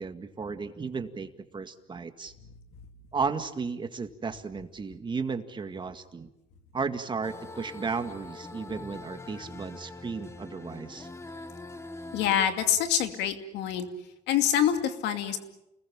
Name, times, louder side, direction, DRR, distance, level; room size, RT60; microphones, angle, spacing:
voice 1, 0.0-2.3 3.1-6.3 6.7-11.1, right 5 dB, 30° right, 7 dB, 2.0 m, -34 dB
sound 1, 7.2-12.4, left 2 dB, 15° left, 1.5 m, -43 dB
voice 2, 12.1-13.9 14.3-15.4, left 9 dB, 90° left, 7 dB, 2.5 m, -26 dB
29.5 x 20.5 x 7.4 m, 0.89 s
cardioid pair, 110°, 17 cm